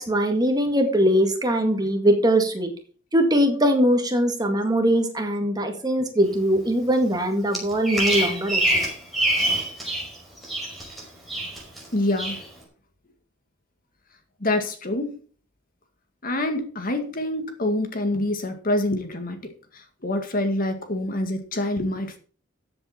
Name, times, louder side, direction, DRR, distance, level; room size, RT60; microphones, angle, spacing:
voice 1, 0.0-2.7 3.1-8.8, equal, 20° right, 5 dB, 1.9 m, -21 dB
Bird vocalization bird call bird song, 7.5-10.1 10.4-11.0 11.3-11.8 12.2-12.4, right 1 dB, ahead, 5.2 m, -24 dB
voice 2, 11.9-12.4 14.4-15.1 16.2-19.5 20.0-22.2, left 1 dB, 45° left, 7 dB, 2.0 m, -26 dB
14.0 x 7.7 x 4.4 m, 0.42 s
head